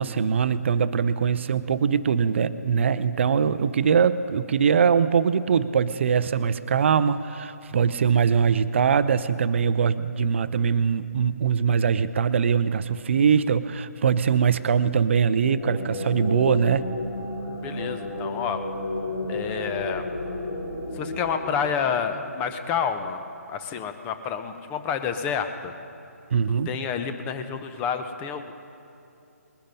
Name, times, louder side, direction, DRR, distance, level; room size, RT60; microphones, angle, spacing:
voice 1, 0.0-16.9 26.3-26.7, right 7 dB, 50° right, 14 dB, 0.6 m, -22 dB
sound 1, 15.2-22.6, left 2 dB, 80° left, 2.9 m, -32 dB
voice 2, 17.6-18.6 19.3-20.0 20.9-23.2 23.5-25.7 26.7-28.5, left 7 dB, 20° left, 8 dB, 0.8 m, -29 dB
21.0 x 10.5 x 5.5 m, 2.7 s
figure-of-eight pair, 145°, 9 cm